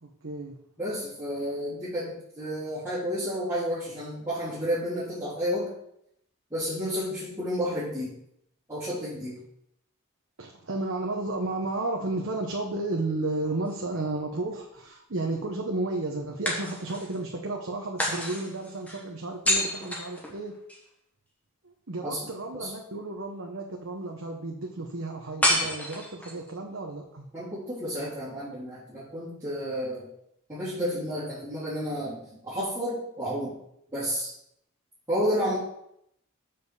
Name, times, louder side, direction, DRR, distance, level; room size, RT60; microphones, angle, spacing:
voice 1, 0.0-0.6 10.4-20.6 21.6-27.3, right 2 dB, 65° right, 0 dB, 1.0 m, -33 dB
voice 2, 0.8-5.7 6.5-8.1 8.7-9.4 22.0-22.7 27.3-30.1 30.5-33.5 33.9-34.3 35.1-35.6, equal, 15° right, -13 dB, 3.2 m, -31 dB
sound 1, 13.3-14.4 16.4-17.2 18.0-20.8 25.4-26.5, left 1 dB, 5° left, 1.4 m, -29 dB
6.8 x 5.3 x 6.8 m, 0.75 s
head